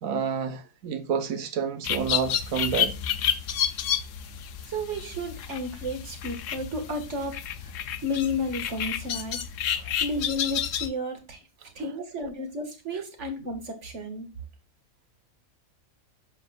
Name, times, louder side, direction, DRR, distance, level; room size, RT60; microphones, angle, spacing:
voice 1, 0.0-2.9 9.7-9.9, right 7 dB, 75° right, 1.3 m, -29 dB
sound 1, 1.8-10.9, left 9 dB, 70° left, 1.0 m, -30 dB
voice 2, 4.6-7.7 8.0-9.4 10.0-11.4 11.8-14.3, left 1 dB, 55° right, 1.9 m, -32 dB
7.2 x 6.0 x 2.3 m
omnidirectional pair, 1.5 m